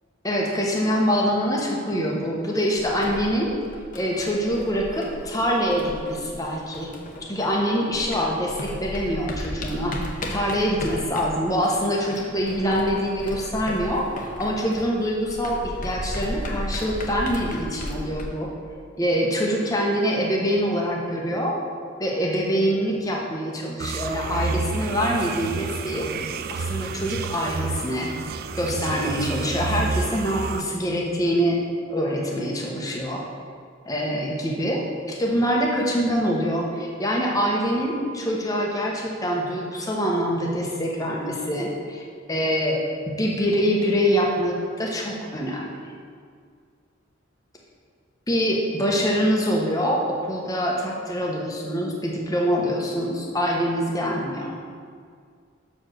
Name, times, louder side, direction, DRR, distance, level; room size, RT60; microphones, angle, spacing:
voice 1, 0.2-3.5 3.9-7.0 7.3-10.0 10.3-18.5 19.0-21.6 22.0-26.1 26.5-28.1 28.5-31.6 31.9-33.2 33.9-42.0 42.3-42.8 43.2-45.8 48.3-54.6, equal, 20° left, -2 dB, 1.0 m, -25 dB
sound 1, 2.8-7.7 7.9-18.3, left 1 dB, 40° left, 0.9 m, -35 dB
sound 2, 23.8-30.6, right 4 dB, 50° right, 0.3 m, -30 dB
6.3 x 4.8 x 6.3 m, 2.1 s
head